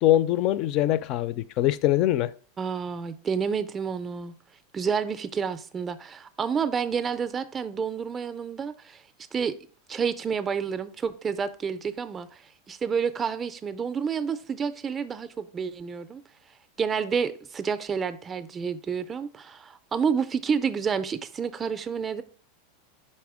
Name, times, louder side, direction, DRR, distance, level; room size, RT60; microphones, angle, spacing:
voice 1, 0.0-2.3, left 13 dB, 40° left, 0.4 m, -23 dB
voice 2, 2.6-4.3 4.7-9.0 9.3-9.5 9.9-12.3 12.7-16.2 16.8-22.2, right 6 dB, 20° right, 0.4 m, -29 dB
5.5 x 4.3 x 4.7 m
supercardioid pair, 150°, 0 cm